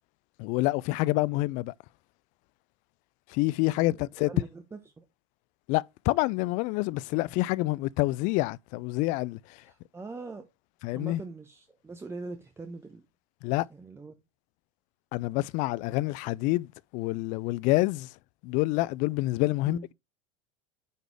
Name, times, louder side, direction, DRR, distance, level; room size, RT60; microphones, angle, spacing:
voice 1, 0.4-1.7 3.3-4.3 5.7-9.4 10.8-11.2 13.4-13.7 15.1-18.1 18.4-19.9, left 20 dB, 50° left, 0.4 m, -27 dB
voice 2, 3.7-5.0 9.6-10.5 10.9-13.0 13.7-14.1 19.6-19.9, right 3 dB, 15° right, 1.0 m, -42 dB
9.3 x 4.0 x 3.2 m
hypercardioid pair, 80°, 16 cm